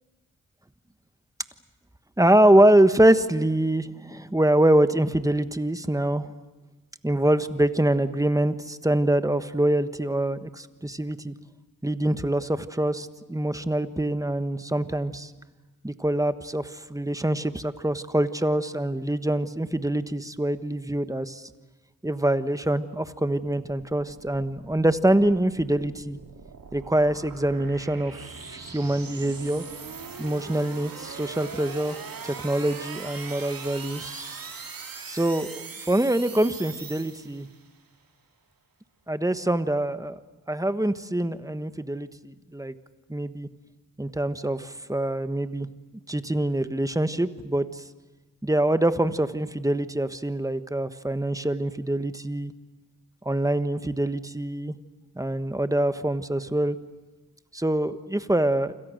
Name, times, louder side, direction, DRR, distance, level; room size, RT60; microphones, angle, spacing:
voice 1, 2.2-6.3 7.0-11.3 11.8-15.3 15.8-21.4 22.0-26.2 26.7-29.7 30.2-32.0 32.2-34.4 35.1-37.5 39.1-40.2 40.5-42.7 43.1-43.5 44.0-45.7 46.1-47.8 48.4-52.5 53.2-54.7 55.1-56.8 57.5-58.7, right 1 dB, 10° right, 11 dB, 1.3 m, -24 dB
sound 1, 23.1-37.7, right 5 dB, 80° right, 2.4 m, -41 dB
28.5 x 26.5 x 6.5 m, 1.1 s
wide cardioid pair, 70°, 34 cm